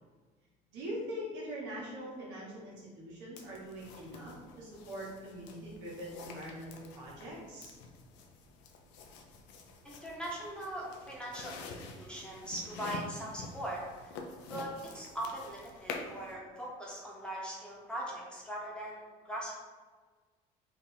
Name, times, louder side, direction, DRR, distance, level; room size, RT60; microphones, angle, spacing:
voice 1, 0.7-7.7, equal, 75° right, -4 dB, 1.3 m, -43 dB
sound 1, 3.4-16.3, left 3 dB, 70° left, 0.5 m, -47 dB
voice 2, 9.8-11.7 12.0-14.2 14.5-19.6, right 1 dB, 5° left, -5 dB, 1.3 m, -40 dB
3.4 x 2.6 x 3.8 m, 1.5 s
supercardioid pair, 80°, 19 cm